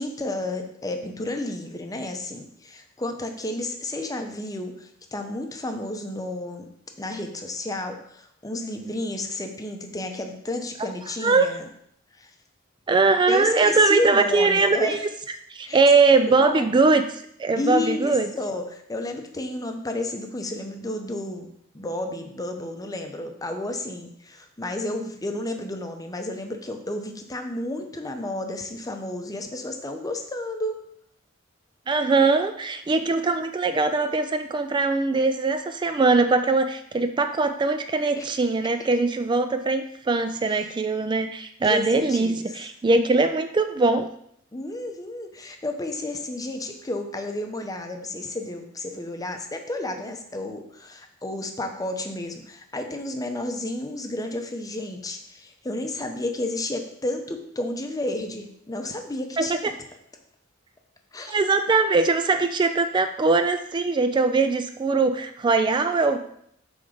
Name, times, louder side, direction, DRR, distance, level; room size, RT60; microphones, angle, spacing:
voice 1, 0.0-6.7 7.0-11.6 12.2-12.3 13.3-15.0 15.6-15.8 16.2-16.7 17.6-21.5 21.7-30.8 38.2-38.4 40.5-40.8 41.6-42.6 44.5-59.5 61.1-61.4, left 2 dB, 15° left, 5 dB, 0.7 m, -31 dB
voice 2, 12.9-15.0 15.5-17.0 17.4-18.3 31.9-44.1 59.4-59.7 61.3-66.2, right 3 dB, 20° right, 8 dB, 0.3 m, -21 dB
7.7 x 3.6 x 5.0 m, 0.70 s
head